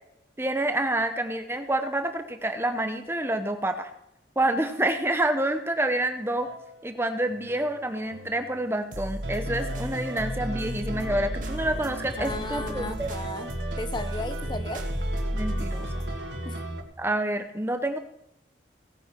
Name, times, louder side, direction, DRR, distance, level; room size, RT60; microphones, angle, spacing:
voice 1, 0.4-3.9 4.4-6.5 6.8-13.1 15.3-15.9 17.0-18.0, right 1 dB, 15° right, 8 dB, 0.8 m, -28 dB
sound 1, 6.4-6.9 7.3-16.2, equal, 45° right, 1.6 m, -35 dB
sound 2, 9.2-16.8, right 1 dB, 70° right, 2.1 m, -35 dB
voice 2, 12.2-14.9 16.4-16.6, left 2 dB, 25° left, 9 dB, 0.7 m, -35 dB
17.5 x 9.8 x 4.5 m, 0.85 s
head